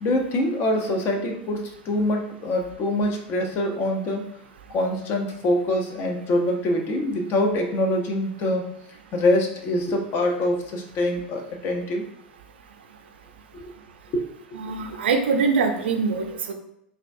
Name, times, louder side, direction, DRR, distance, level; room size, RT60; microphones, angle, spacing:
voice 1, 0.0-4.3 4.7-8.7 9.1-12.0 13.5-13.6 14.1-14.2, left 1 dB, 40° left, 3 dB, 0.7 m, -24 dB
voice 2, 14.5-16.5, right 4 dB, 80° right, 4 dB, 0.5 m, -23 dB
3.7 x 2.3 x 2.6 m, 0.76 s
hypercardioid pair, 100°, 6 cm